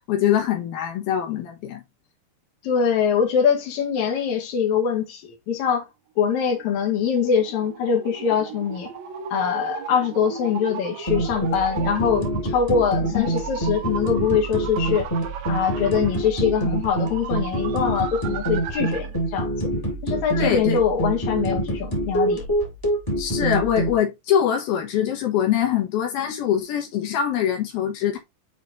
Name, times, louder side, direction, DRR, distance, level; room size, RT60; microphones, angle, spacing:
voice 1, 0.1-1.8 13.1-13.3 20.3-20.8 23.2-28.2, left 9 dB, 80° left, 3.2 m, -23 dB
voice 2, 2.6-5.9 6.2-8.9 9.3-15.1 15.5-19.7 20.0-22.4, left 7 dB, 55° left, 2.9 m, -23 dB
sound 1, 6.5-19.2, right 7 dB, 90° right, 1.5 m, -37 dB
sound 2, 11.1-23.9, right 1 dB, 10° left, 1.6 m, -26 dB
7.9 x 4.5 x 2.7 m
omnidirectional pair, 4.4 m